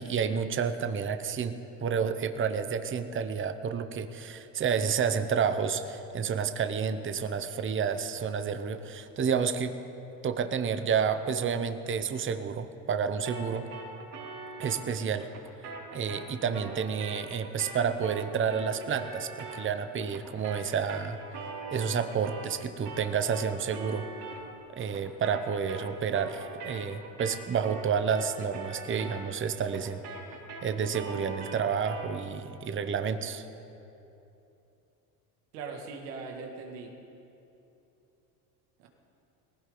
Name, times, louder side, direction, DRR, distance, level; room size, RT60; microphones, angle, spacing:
voice 1, 0.0-9.8 10.2-13.7 14.6-15.3 15.9-21.2 21.7-24.1 24.7-30.0 30.6-33.5, right 6 dB, 25° right, 9 dB, 0.9 m, -30 dB
sound 1, 13.3-22.6 22.9-32.2, right 3 dB, 60° right, 4.0 m, -43 dB
voice 2, 35.5-37.0 38.8-38.9, right 4 dB, 80° right, 2 dB, 2.2 m, -40 dB
19.0 x 16.0 x 3.9 m, 2.8 s
supercardioid pair, 85°, 47 cm